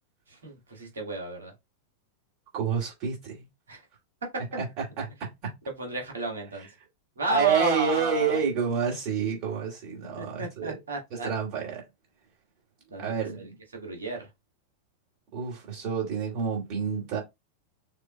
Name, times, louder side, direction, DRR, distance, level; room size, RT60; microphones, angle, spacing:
voice 1, 0.3-1.5 3.7-3.8 5.8-6.7 7.2-8.4 10.2-11.3 12.9-13.1 13.4-14.3, right 2 dB, 70° right, 1.9 m, -33 dB
voice 2, 2.5-3.5 4.6-4.7 5.0-5.5 7.3-10.8 11.1-11.8 13.0-13.6 15.3-17.2, right 6 dB, 45° right, 2.7 m, -29 dB
6.6 x 2.8 x 2.3 m
figure-of-eight pair, 90°, 0 cm